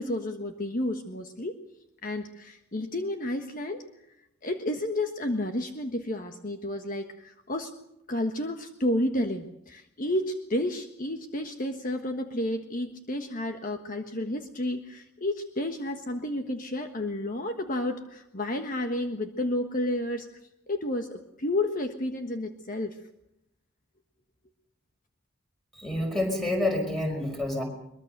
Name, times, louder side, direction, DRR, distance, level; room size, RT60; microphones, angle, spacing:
voice 1, 0.0-1.5 2.0-3.8 4.4-7.7 8.1-20.3 20.7-23.0, left 1 dB, 40° left, 5 dB, 1.4 m, -31 dB
voice 2, 25.7-27.6, left 1 dB, ahead, 2 dB, 5.4 m, -28 dB
22.5 x 22.5 x 6.7 m, 0.82 s
head